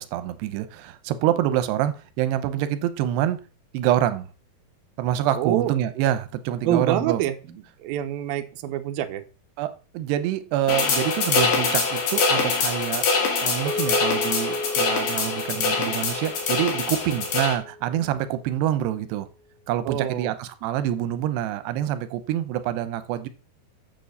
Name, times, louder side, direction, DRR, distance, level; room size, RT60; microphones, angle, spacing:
voice 1, 0.0-3.4 3.7-4.3 5.0-7.2 9.6-13.0 13.4-19.3 19.7-23.3, right 12 dB, 90° right, 12 dB, 2.9 m, -26 dB
voice 2, 5.4-5.7 6.6-9.2 19.9-20.3, right 11 dB, 70° right, 7 dB, 2.7 m, -26 dB
sound 1, 10.7-17.5, left 4 dB, 85° left, 4.5 m, -24 dB
sound 2, 13.7-18.2, left 2 dB, 35° right, 4.0 m, -34 dB
9.1 x 6.9 x 6.9 m, 0.37 s
omnidirectional pair, 4.7 m